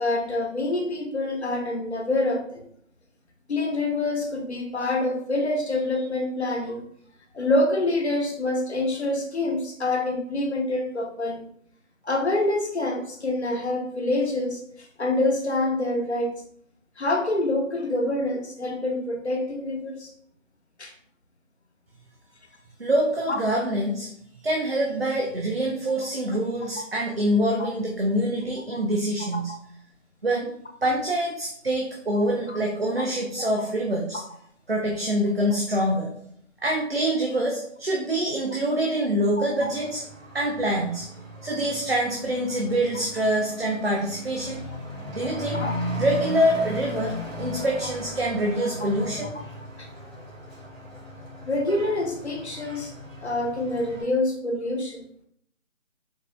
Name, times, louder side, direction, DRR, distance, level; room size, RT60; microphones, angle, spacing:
voice 1, 0.0-2.6 3.5-6.9 7.3-11.4 12.0-16.4 17.0-20.1 20.8-20.9 23.3-23.4 27.6-27.7 28.7-28.8 32.5-32.6 39.6-39.7 45.5-45.7 49.8-49.9 51.4-52.9 53.2-55.0, left 2 dB, 55° left, 3 dB, 0.8 m, -26 dB
voice 2, 22.8-24.1 24.4-29.5 30.2-30.5 30.8-34.2 34.7-36.1 36.6-40.0 40.3-41.1 41.4-44.6 45.1-45.6 46.0-49.3, right 1 dB, 50° right, -1 dB, 0.6 m, -25 dB
Truck / Accelerating revving vroom, 39.6-54.0, equal, 75° right, 1.5 m, -37 dB
4.3 x 2.3 x 3.1 m, 0.66 s
figure-of-eight pair, 175°, 40 cm